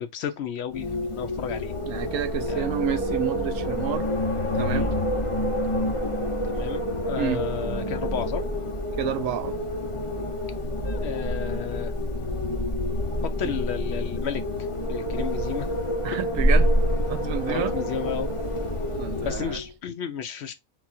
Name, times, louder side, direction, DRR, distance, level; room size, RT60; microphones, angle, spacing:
voice 1, 0.0-1.7 2.5-2.7 4.7-4.9 6.4-8.4 10.8-11.9 13.2-14.4 14.9-15.7 17.5-18.3 19.2-20.5, left 8 dB, 65° left, 0.7 m, -33 dB
Wind, 0.7-19.7, equal, 25° left, 0.8 m, -27 dB
voice 2, 1.9-4.1 4.5-4.9 7.2-7.4 9.0-9.6 13.4-13.6 16.0-16.7 17.1-17.7 19.0-19.6, right 9 dB, 70° right, 1.0 m, -29 dB
4.0 x 2.4 x 4.2 m
omnidirectional pair, 1.5 m